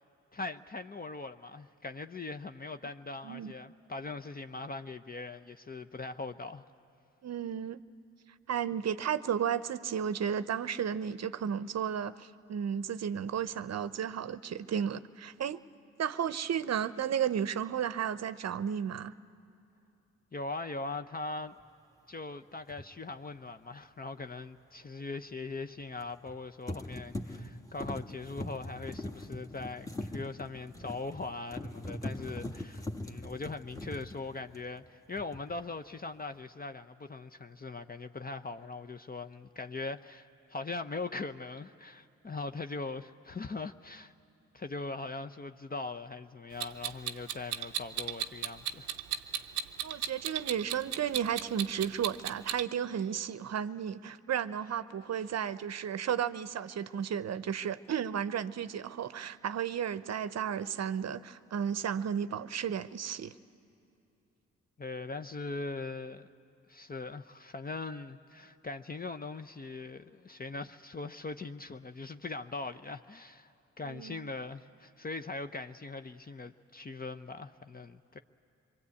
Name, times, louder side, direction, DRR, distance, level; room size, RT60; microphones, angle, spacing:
voice 1, 0.3-6.6 20.3-21.6 22.1-44.1 44.5-48.9 64.8-66.3 66.7-73.5 73.8-78.2, left 3 dB, 30° left, 8 dB, 0.8 m, -41 dB
voice 2, 7.2-7.8 8.5-15.6 16.0-19.1 49.8-63.3 73.8-74.3, right 8 dB, 55° right, 15 dB, 0.7 m, -33 dB
sound 1, 22.7-22.9 26.0-26.4 26.7-34.9 35.2-35.6, left 1 dB, 10° left, 1.6 m, -41 dB
Clock, 46.6-52.6, right 11 dB, 90° right, 0.6 m, -35 dB
25.0 x 23.0 x 8.4 m, 2.7 s
hypercardioid pair, 45°, 32 cm